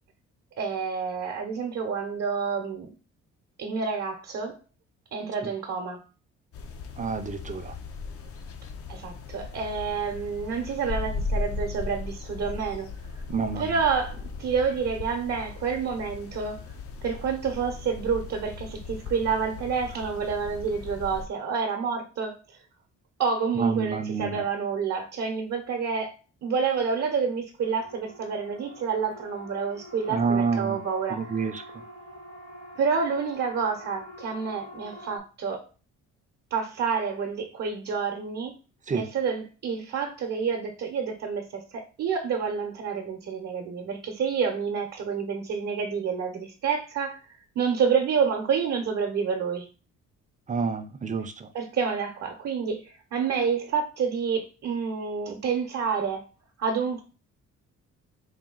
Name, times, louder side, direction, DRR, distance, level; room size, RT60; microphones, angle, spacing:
voice 1, 0.6-2.9 3.6-4.6 5.1-6.0 8.9-13.2 13.6-16.6 17.0-22.4 23.2-26.1 26.4-31.6 32.8-35.6 36.5-38.5 38.9-47.2 47.6-49.7 51.5-56.2 56.6-57.0, right 6 dB, 55° right, 3 dB, 0.8 m, -28 dB
sound 1, 6.5-21.3, left 4 dB, 50° left, 0.6 m, -37 dB
voice 2, 7.0-7.7 13.3-13.7 23.6-24.4 30.1-30.8 31.1-31.6 38.9-39.1 50.5-51.5, right 5 dB, 25° right, 8 dB, 0.6 m, -28 dB
Siren, 27.6-35.2, equal, 70° left, 1.8 m, -46 dB
4.2 x 2.3 x 3.8 m, 0.35 s
cardioid pair, 90°, 30 cm